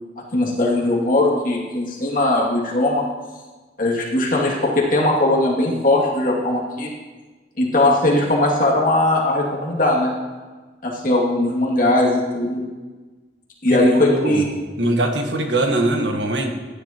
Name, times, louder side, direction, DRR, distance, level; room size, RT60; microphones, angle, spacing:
voice 1, 0.3-3.0 3.8-6.9 7.6-10.1 10.8-12.6 13.6-14.5, left 1 dB, 50° left, -4 dB, 2.5 m, -19 dB
voice 2, 13.7-14.4 14.8-16.5, right 1 dB, 85° right, 3 dB, 1.5 m, -21 dB
15.0 x 10.5 x 3.0 m, 1.3 s
head